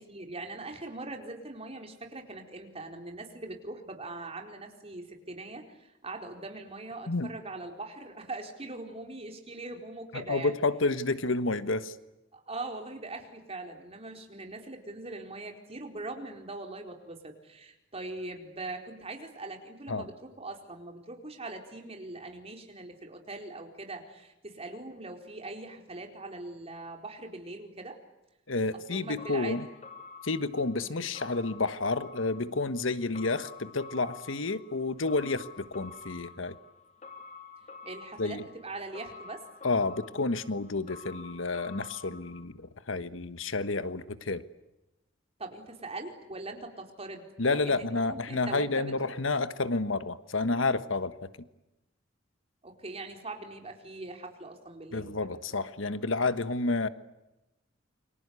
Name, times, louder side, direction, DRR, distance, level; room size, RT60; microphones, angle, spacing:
voice 1, 0.1-10.5 12.3-28.0 28.9-29.7 30.8-31.1 37.8-39.4 45.4-49.1 52.6-55.4, right 2 dB, 30° right, 3 dB, 4.4 m, -41 dB
voice 2, 10.1-11.9 19.9-20.0 28.5-29.7 30.2-36.6 38.2-38.4 39.6-44.4 47.4-51.3 54.9-56.9, left 3 dB, 75° left, 12 dB, 1.4 m, -30 dB
sound 1, 29.2-42.4, left 4 dB, 35° left, 2.4 m, -49 dB
29.0 x 24.5 x 8.3 m, 0.96 s
head